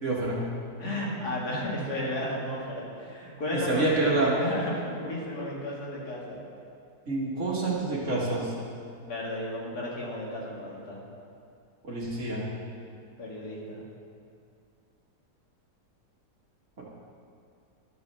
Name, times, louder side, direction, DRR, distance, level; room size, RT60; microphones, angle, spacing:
voice 1, 0.0-0.4 3.7-4.3 7.1-8.5 11.8-12.4, right 2 dB, 45° right, -5 dB, 2.2 m, -27 dB
voice 2, 0.8-6.4 9.1-11.0 13.2-13.8, left 1 dB, 75° left, -4 dB, 2.6 m, -33 dB
12.5 x 5.5 x 6.8 m, 2.4 s
omnidirectional pair, 1.7 m